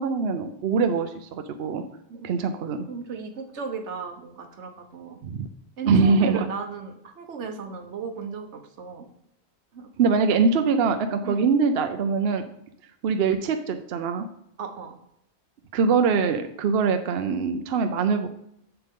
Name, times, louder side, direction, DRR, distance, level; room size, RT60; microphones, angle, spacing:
voice 1, 0.0-1.8 2.2-2.9 5.2-5.5 5.9-6.4 10.0-12.4 13.0-14.3 15.7-18.3, right 5 dB, 65° right, 7 dB, 0.8 m, -23 dB
voice 2, 2.9-5.2 5.8-9.1 9.7-9.9 11.2-11.5 14.6-15.0, right 5 dB, 80° right, 6 dB, 1.3 m, -36 dB
7.7 x 7.0 x 3.6 m, 0.75 s
omnidirectional pair, 1.2 m